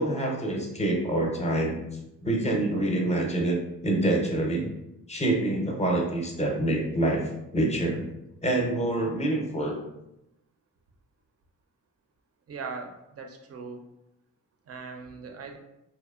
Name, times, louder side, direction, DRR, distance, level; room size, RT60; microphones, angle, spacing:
voice 1, 0.0-1.8 2.2-4.7 5.1-7.2 7.5-8.0 8.4-9.7, right 1 dB, 20° left, 0 dB, 0.5 m, -26 dB
voice 2, 12.5-13.8 14.7-15.6, right 4 dB, 50° right, 4 dB, 0.4 m, -39 dB
2.7 x 2.1 x 2.3 m, 0.87 s
cardioid pair, 80°, 32 cm